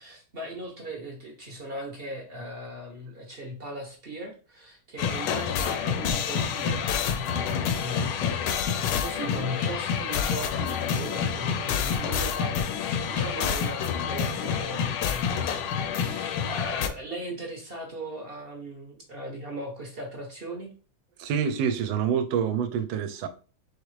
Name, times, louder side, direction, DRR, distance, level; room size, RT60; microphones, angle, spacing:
voice 1, 0.0-8.6 9.0-20.7, right 1 dB, 45° right, 0.8 m, -38 dB
sound 1, 5.0-16.9, left 7 dB, 80° left, 1.2 m, -28 dB
voice 2, 21.2-23.3, right 8 dB, 90° right, 1.3 m, -27 dB
4.8 x 3.3 x 3.1 m
omnidirectional pair, 2.0 m